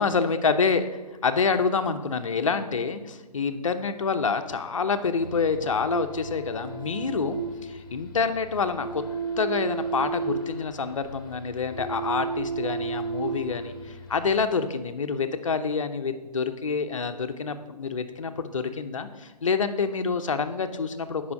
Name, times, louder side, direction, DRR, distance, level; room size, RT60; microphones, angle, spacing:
voice 1, 0.0-9.0 9.4-21.2, left 5 dB, 50° left, 8 dB, 0.7 m, -27 dB
sound 1, 5.2-14.5, right 4 dB, 35° left, 1.1 m, -34 dB
9.4 x 5.6 x 5.5 m, 1.2 s
figure-of-eight pair, 145°, 21 cm